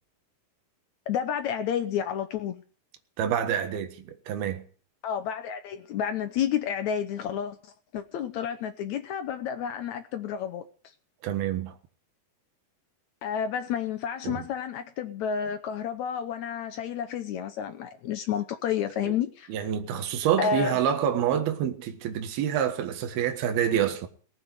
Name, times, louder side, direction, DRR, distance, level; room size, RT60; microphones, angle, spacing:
voice 1, 1.1-2.6 5.0-10.6 13.2-19.7 20.4-20.8, left 8 dB, 80° left, 1.7 m, -30 dB
voice 2, 3.2-4.6 11.2-11.7 14.2-14.4 19.0-19.1 19.5-24.1, right 9 dB, 75° right, 3.4 m, -27 dB
18.5 x 8.1 x 9.7 m
omnidirectional pair, 4.5 m